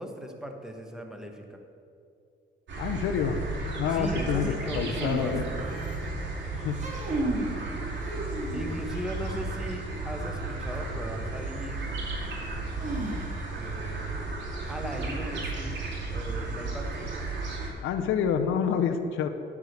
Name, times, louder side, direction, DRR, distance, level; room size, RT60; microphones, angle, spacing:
voice 1, 0.0-1.6 3.9-5.8 8.5-11.9 13.5-14.4 14.7-17.1, equal, 5° right, 3 dB, 1.2 m, -38 dB
sound 1, 2.7-17.7, right 3 dB, 65° right, 2.6 m, -34 dB
voice 2, 2.8-3.4 3.8-5.4 6.5-6.8 17.8-19.3, left 7 dB, 80° left, 7 dB, 0.7 m, -27 dB
sound 2, 4.9-6.1 6.6-7.5 8.0-8.9 10.9-11.0 12.8-13.6, right 2 dB, 40° right, 2.1 m, -34 dB
10.0 x 4.9 x 6.6 m, 2.4 s
cardioid pair, 90°, 20 cm